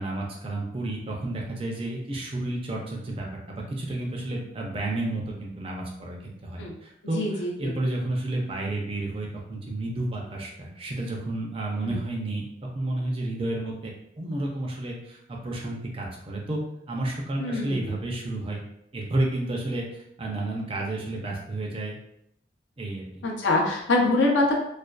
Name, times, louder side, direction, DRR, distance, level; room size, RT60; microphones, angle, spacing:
voice 1, 0.0-12.5 12.7-16.6 16.9-18.6 18.9-19.8 20.2-22.0 22.8-23.2, right 2 dB, 30° right, -1 dB, 0.4 m, -31 dB
voice 2, 7.1-7.5 11.8-12.0 17.4-17.9 23.2-24.5, left 2 dB, 75° left, -1 dB, 0.6 m, -24 dB
2.5 x 2.3 x 2.2 m, 0.75 s
head